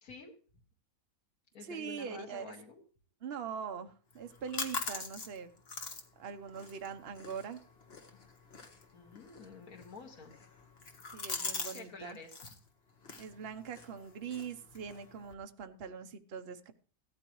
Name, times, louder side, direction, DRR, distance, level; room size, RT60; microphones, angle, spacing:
voice 1, 0.0-0.3 1.5-2.8 8.9-10.3 11.7-12.3, left 4 dB, 75° left, 2 dB, 2.1 m, -49 dB
voice 2, 1.6-2.5 3.2-5.5 6.2-7.6 11.1-12.2 13.2-16.7, right 7 dB, 45° right, 7 dB, 1.1 m, -42 dB
sound 1, 4.1-11.8 12.1-12.6 13.0-15.3, left 4 dB, 45° left, 1.6 m, -43 dB
16.5 x 13.0 x 3.1 m, 0.42 s
omnidirectional pair, 1.5 m